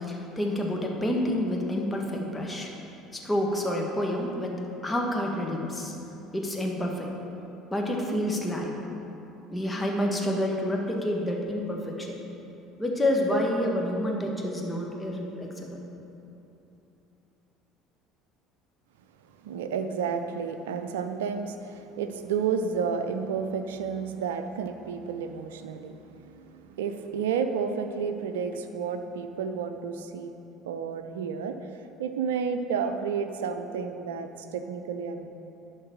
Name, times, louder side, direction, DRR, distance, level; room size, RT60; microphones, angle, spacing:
voice 1, 0.0-2.7 3.1-5.9 6.3-7.1 7.7-8.7 9.5-12.1 12.8-15.9, left 1 dB, 15° left, -1 dB, 1.6 m, -28 dB
voice 2, 19.4-30.3 30.6-31.7 32.0-35.3, right 6 dB, 75° right, 8 dB, 0.5 m, -31 dB
11.0 x 4.0 x 6.5 m, 2.9 s
figure-of-eight pair, 60°, 0 cm